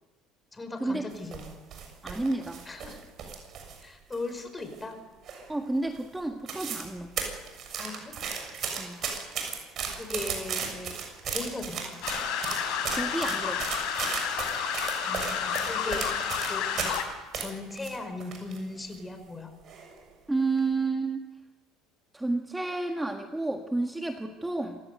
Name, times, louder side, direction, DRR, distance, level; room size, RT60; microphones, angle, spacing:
voice 1, 0.5-1.5 2.7-3.0 3.8-5.0 7.8-8.1 10.0-11.0 11.3-11.9 15.1-16.1 16.5-16.7 17.3-19.5, left 2 dB, 20° left, 7 dB, 5.3 m, -38 dB
sound 1, 1.1-3.8 4.1-4.9 5.3-5.6 5.9-6.0 6.3-6.9 7.2-17.0 17.3-18.6 18.9-19.0 19.7-20.0 20.4-20.6, right 6 dB, 50° right, 6.8 m, -35 dB
voice 2, 2.0-2.7 5.5-7.1 8.8-9.0 13.0-13.7 20.3-21.3 22.1-24.8, right 3 dB, 10° right, 4 dB, 1.6 m, -30 dB
sound 2, 12.0-17.0, left 7 dB, 70° left, 4.1 m, -30 dB
26.5 x 16.0 x 8.3 m, 1.2 s
supercardioid pair, 85°, 0 cm